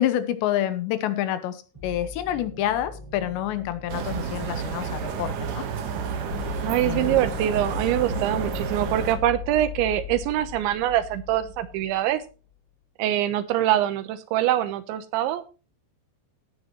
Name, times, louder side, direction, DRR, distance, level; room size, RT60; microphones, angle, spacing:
voice 1, 0.0-5.7 6.8-7.2, left 12 dB, 75° left, 11 dB, 3.0 m, -28 dB
sound 1, 1.7-10.4, left 1 dB, 5° right, 5.3 m, -44 dB
sound 2, 3.9-9.2, right 7 dB, 60° right, 2.4 m, -31 dB
sound 3, 4.7-12.2, left 9 dB, 55° left, 2.2 m, -37 dB
voice 2, 6.6-12.2 13.0-15.6, right 12 dB, 80° right, 12 dB, 3.3 m, -24 dB
17.0 x 9.5 x 3.1 m, 0.32 s
omnidirectional pair, 5.3 m